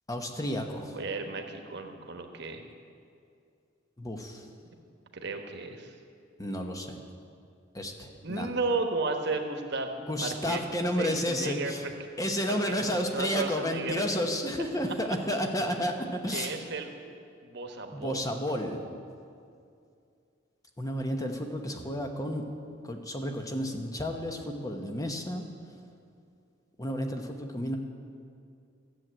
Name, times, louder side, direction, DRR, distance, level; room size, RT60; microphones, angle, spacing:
voice 1, 0.1-1.0 4.0-4.4 6.4-7.0 7.7-8.5 10.0-11.8 12.2-16.6 17.9-18.8 20.8-22.5 22.8-25.4 26.8-27.8, equal, 20° left, 4 dB, 1.1 m, -31 dB
voice 2, 0.9-2.6 5.1-5.9 8.2-10.6 11.0-11.7 12.5-14.0 15.7-16.9 17.4-18.3, right 3 dB, 60° right, 4 dB, 1.2 m, -34 dB
13.0 x 7.7 x 8.9 m, 2.4 s
head